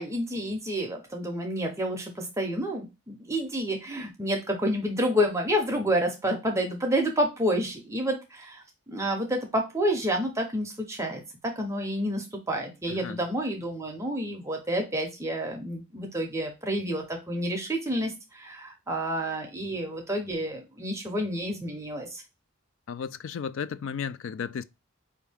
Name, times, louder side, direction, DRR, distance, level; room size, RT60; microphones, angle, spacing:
voice 1, 0.0-22.2, equal, 15° right, 0.6 m, -29 dB
voice 2, 12.9-13.2 22.9-24.6, left 7 dB, 60° left, 0.3 m, -34 dB
4.6 x 2.7 x 3.3 m
head